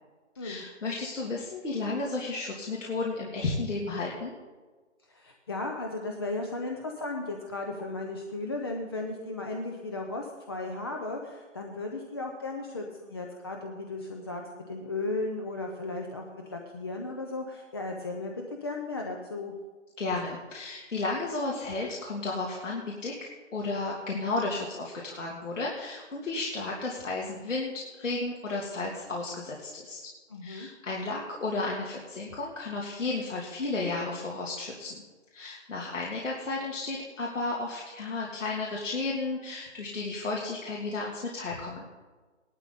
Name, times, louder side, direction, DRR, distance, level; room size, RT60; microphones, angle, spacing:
voice 1, 0.4-4.4 20.0-30.0 30.4-35.0 35.3-41.8, left 3 dB, 75° left, -3 dB, 3.0 m, -33 dB
voice 2, 5.1-18.3 18.6-19.5 30.3-30.7, left 2 dB, 20° left, 2 dB, 0.6 m, -35 dB
17.5 x 12.0 x 4.1 m, 1.3 s
hypercardioid pair, 160°, 37 cm